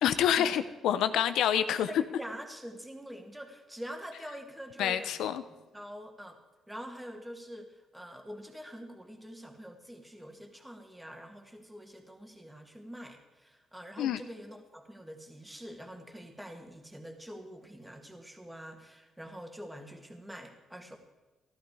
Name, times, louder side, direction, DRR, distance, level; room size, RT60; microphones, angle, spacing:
voice 1, 0.0-1.9 4.8-5.4 14.0-14.2, left 10 dB, 80° left, 12 dB, 0.8 m, -27 dB
voice 2, 1.8-5.2 5.5-6.4 6.7-21.0, equal, 5° right, 4 dB, 2.2 m, -45 dB
15.0 x 12.5 x 4.9 m, 1.1 s
cardioid pair, 90°, 0 cm